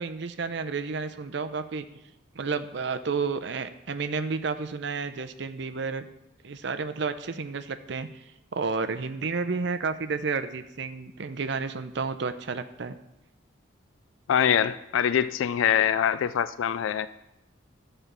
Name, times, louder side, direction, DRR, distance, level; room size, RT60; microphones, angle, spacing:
voice 1, 0.0-1.9 2.4-6.1 6.4-8.1 8.5-13.0, right 4 dB, 60° right, 9 dB, 0.6 m, -31 dB
voice 2, 14.3-17.1, left 9 dB, 75° left, 15 dB, 0.3 m, -24 dB
12.0 x 4.5 x 6.7 m, 0.91 s
head